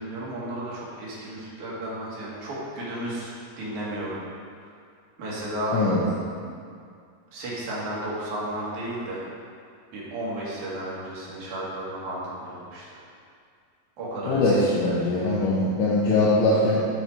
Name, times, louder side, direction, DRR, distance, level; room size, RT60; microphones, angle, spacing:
voice 1, 0.0-4.2 5.2-5.8 7.3-9.2 9.9-13.0 14.0-14.6, right 1 dB, 60° right, -7 dB, 2.9 m, -33 dB
voice 2, 14.3-16.9, left 2 dB, 70° left, -7 dB, 2.3 m, -21 dB
7.4 x 6.7 x 4.6 m, 2.3 s
omnidirectional pair, 4.3 m